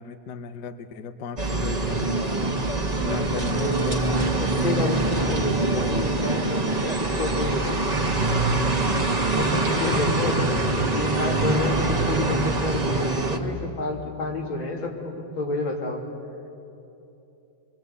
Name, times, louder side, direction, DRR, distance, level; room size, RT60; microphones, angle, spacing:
voice 1, 0.0-2.5 3.0-4.2 9.8-10.0, left 6 dB, 65° left, 9 dB, 1.4 m, -36 dB
sound 1, 1.4-13.4, right 2 dB, 20° right, 1.6 m, -24 dB
voice 2, 3.5-7.9 9.4-16.1, left 2 dB, 90° left, 0 dB, 3.6 m, -29 dB
26.5 x 23.0 x 8.3 m, 2.9 s
omnidirectional pair, 2.1 m